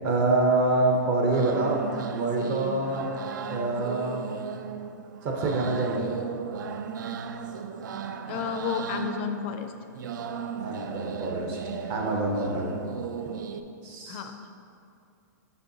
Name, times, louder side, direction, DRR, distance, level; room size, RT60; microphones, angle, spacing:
voice 1, 0.0-1.8 2.1-3.2 3.5-4.3 5.2-6.1 10.6-12.7 13.8-14.3, right 2 dB, 30° right, 0 dB, 0.6 m, -26 dB
sound 1, 0.8-13.6, right 6 dB, 80° right, 0.4 m, -36 dB
voice 2, 8.3-9.7 14.1-14.3, left 7 dB, 35° left, 7 dB, 0.4 m, -31 dB
6.6 x 5.8 x 2.6 m, 2.5 s
hypercardioid pair, 160°, 10 cm